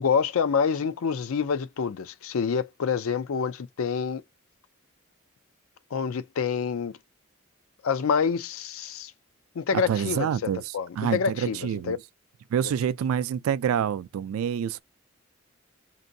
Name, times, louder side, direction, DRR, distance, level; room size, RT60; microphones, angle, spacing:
voice 1, 0.0-4.2 5.9-7.0 7.8-9.1 9.6-10.3 10.7-12.0, left 6 dB, 80° left, 0.4 m, -27 dB
voice 2, 9.7-12.0 12.5-14.8, right 8 dB, 85° right, 0.3 m, -27 dB
5.1 x 2.6 x 2.6 m
head